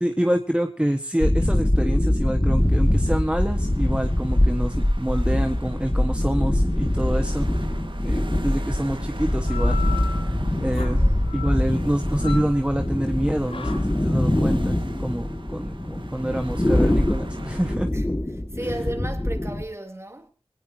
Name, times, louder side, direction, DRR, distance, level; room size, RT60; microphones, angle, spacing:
voice 1, 0.0-7.5 8.0-9.8 10.6-11.0 11.3-17.9, right 1 dB, 10° right, 1.5 m, -26 dB
sound 1, 1.2-19.6, left 1 dB, 20° left, 2.0 m, -23 dB
sound 2, 2.6-17.8, right 2 dB, 55° right, 1.8 m, -41 dB
sound 3, 9.3-18.5, left 5 dB, 80° left, 6.8 m, -39 dB
voice 2, 10.9-11.4 17.9-18.2 18.5-20.3, right 1 dB, 25° right, 3.4 m, -34 dB
22.0 x 18.5 x 2.9 m
wide cardioid pair, 50°, 10 cm